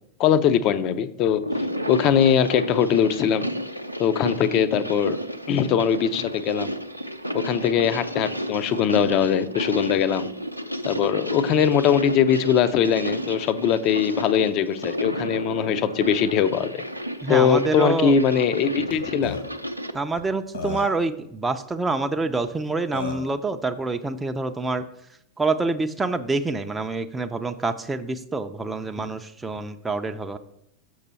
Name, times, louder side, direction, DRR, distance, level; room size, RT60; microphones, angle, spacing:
voice 1, 0.2-1.4 1.9-3.5 4.0-5.2 5.5-6.7 7.3-10.3 10.8-16.8 17.3-19.4, left 8 dB, 40° left, 13 dB, 0.5 m, -21 dB
sound 1, 1.3-20.0, equal, 90° right, 0.5 m, -31 dB
voice 2, 17.2-18.1 19.9-24.8 25.4-30.4, right 3 dB, 10° right, 7 dB, 0.5 m, -26 dB
Burping eructation, 18.9-19.0 19.2-19.4 20.2-20.3 20.5-21.1 22.4-22.5 22.9-23.3, left 4 dB, 60° left, 1.3 m, -32 dB
6.7 x 6.4 x 4.2 m, 0.76 s
figure-of-eight pair, 90°, 0 cm